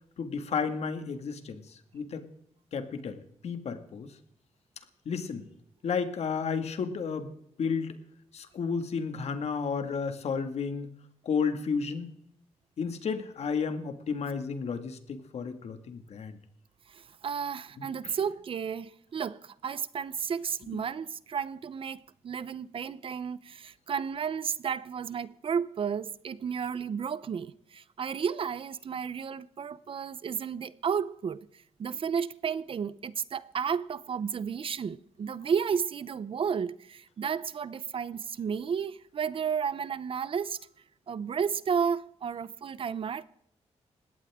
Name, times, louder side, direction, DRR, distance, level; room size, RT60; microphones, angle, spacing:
voice 1, 0.2-1.7 1.9-2.2 2.7-3.2 3.4-4.1 5.1-5.5 5.8-7.3 7.6-8.0 8.3-10.9 11.2-12.1 12.8-16.3 17.8-18.1, left 5 dB, 65° left, 2.0 m, -32 dB
voice 2, 16.9-31.5 31.8-40.6 41.1-43.2, right 7 dB, 50° right, 0.7 m, -32 dB
20.5 x 17.0 x 3.7 m
wide cardioid pair, 125°, 12 cm